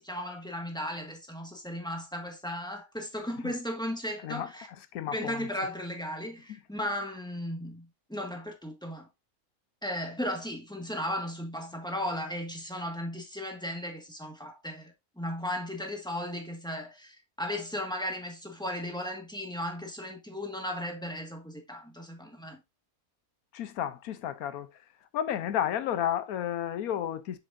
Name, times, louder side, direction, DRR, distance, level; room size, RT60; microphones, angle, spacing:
voice 1, 0.0-4.7 5.1-9.1 9.8-22.6, left 1 dB, 5° left, 1.5 m, -36 dB
voice 2, 4.9-5.5 23.5-24.7 25.1-27.4, left 10 dB, 90° left, 1.2 m, -32 dB
6.8 x 6.8 x 2.6 m
omnidirectional pair, 1.5 m